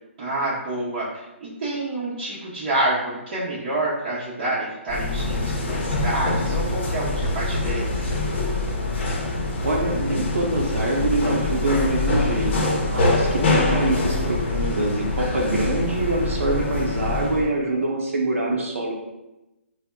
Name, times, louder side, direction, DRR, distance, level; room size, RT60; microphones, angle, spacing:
voice 1, 0.2-8.2, right 1 dB, 40° right, -8 dB, 0.7 m, -28 dB
sound 1, 4.9-17.5, left 2 dB, 55° left, 0.7 m, -24 dB
voice 2, 9.6-18.9, right 2 dB, 80° right, -1 dB, 0.6 m, -25 dB
4.1 x 2.0 x 2.2 m, 0.98 s
hypercardioid pair, 150°, 7 cm